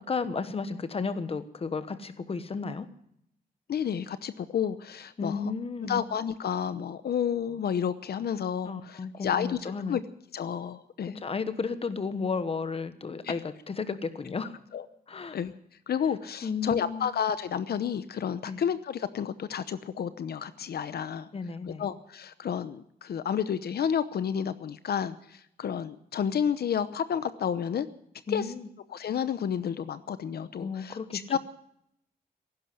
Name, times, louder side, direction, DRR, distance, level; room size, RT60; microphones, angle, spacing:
voice 1, 0.0-2.9 5.2-6.0 8.6-10.0 11.1-14.6 15.1-15.4 16.4-17.1 18.4-18.6 21.3-21.9 28.3-28.7 30.6-31.4, left 4 dB, 35° left, 12 dB, 1.2 m, -33 dB
voice 2, 3.7-5.5 5.8-9.6 9.9-10.0 10.3-11.2 14.7-14.8 15.3-15.5 15.9-21.3 21.8-27.9 28.3-28.5 28.9-31.4, left 8 dB, 75° left, 13 dB, 0.8 m, -31 dB
16.0 x 11.5 x 7.6 m, 0.73 s
wide cardioid pair, 170°, 16 cm